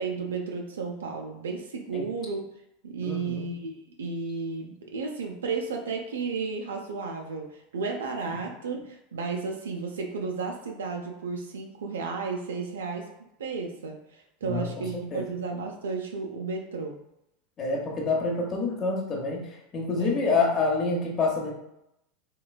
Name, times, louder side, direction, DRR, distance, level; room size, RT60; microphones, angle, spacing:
voice 1, 0.0-2.4 2.8-13.1 13.4-17.0 20.0-20.2, right 4 dB, 85° right, 2 dB, 0.3 m, -33 dB
voice 2, 3.0-3.5 8.3-8.4 14.5-14.7 15.1-15.2 17.6-21.5, left 3 dB, 35° left, -1 dB, 0.8 m, -27 dB
3.1 x 2.2 x 2.2 m, 0.82 s
hypercardioid pair, 95°, 0 cm